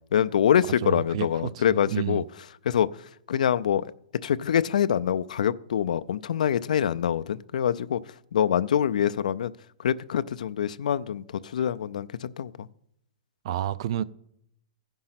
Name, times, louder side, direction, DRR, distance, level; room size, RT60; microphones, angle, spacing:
voice 1, 0.1-2.2 2.6-2.9 3.3-3.9 4.2-8.0 8.3-9.5 9.8-12.7, left 9 dB, 85° left, 0.4 m, -25 dB
voice 2, 0.8-2.2 13.4-14.0, right 12 dB, 45° right, 0.4 m, -30 dB
15.5 x 5.3 x 5.8 m
hypercardioid pair, 165°, 4 cm